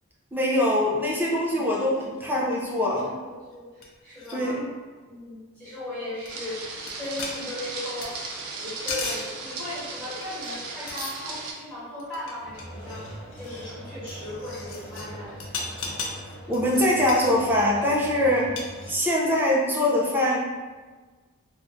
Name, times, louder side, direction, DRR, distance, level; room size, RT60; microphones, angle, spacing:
voice 1, 0.3-3.1 4.3-4.6 16.5-18.5 18.9-20.4, left 1 dB, 10° right, -4 dB, 0.5 m, -23 dB
sound 1, 1.4-3.0 3.5-3.6 3.8-3.9 4.1-4.4 6.3-6.4 6.9-7.0 7.2-8.1 8.6-9.3 10.2-10.6 10.9-11.5 12.0-15.1 15.4-17.3 18.4-19.2, left 4 dB, 65° left, 0.5 m, -37 dB
voice 2, 2.9-4.6 5.1-8.1 8.6-15.3 18.3-18.5, left 1 dB, 5° left, -10 dB, 1.4 m, -37 dB
sound 2, 6.3-11.5, right 3 dB, 85° right, 0.5 m, -36 dB
sound 3, 12.4-18.9, equal, 35° right, 0.9 m, -42 dB
2.7 x 2.2 x 3.6 m, 1.4 s
head